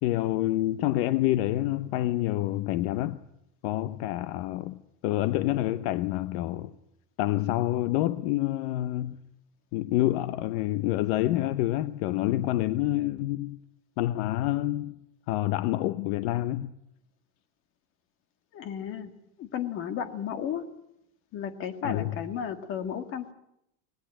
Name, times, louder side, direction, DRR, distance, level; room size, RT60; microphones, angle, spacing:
voice 1, 0.0-3.2 3.6-6.7 7.2-9.2 9.7-13.6 14.0-15.0 15.3-16.7 21.8-22.1, left 15 dB, 60° left, 0.9 m, -27 dB
voice 2, 18.5-19.1 19.4-20.6 21.3-23.3, left 8 dB, 35° left, 1.9 m, -33 dB
25.0 x 19.5 x 9.1 m
cardioid pair, 175°, 35 cm